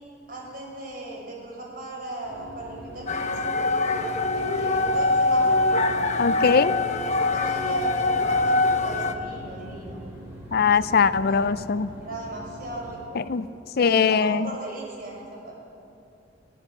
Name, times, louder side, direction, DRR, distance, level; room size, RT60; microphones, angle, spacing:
voice 1, 0.3-3.5 4.3-5.7 6.9-10.0 10.8-10.9 11.2-11.4 12.0-13.2 13.8-15.5, right 1 dB, 55° right, -1 dB, 6.7 m, -37 dB
sound 1, 2.2-13.0, right 1 dB, 15° right, 6.7 m, -42 dB
sound 2, 3.1-9.1, left 2 dB, 40° left, 1.1 m, -23 dB
voice 2, 6.2-6.7 10.5-11.9 13.3-13.4 13.8-14.5, left 5 dB, 60° left, 14 dB, 0.5 m, -21 dB
24.0 x 16.5 x 7.6 m, 2.7 s
head